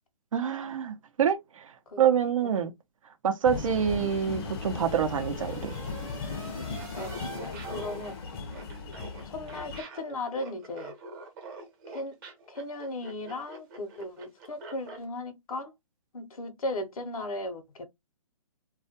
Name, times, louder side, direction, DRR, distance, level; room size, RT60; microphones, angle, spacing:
voice 1, 0.3-1.7 2.0-2.7 3.2-5.7, right 8 dB, 65° right, 0.6 m, -26 dB
sound 1, 3.4-9.8, left 4 dB, 45° left, 0.5 m, -37 dB
sound 2, 3.6-8.6, right 2 dB, 10° right, 0.7 m, -47 dB
Laughter, 6.7-15.0, right 3 dB, 35° right, 0.9 m, -45 dB
voice 2, 7.0-8.2 9.3-10.9 11.9-12.2 12.5-15.7 16.1-17.9, left 2 dB, 80° left, 0.7 m, -36 dB
2.3 x 2.2 x 2.6 m
hypercardioid pair, 145°, 18 cm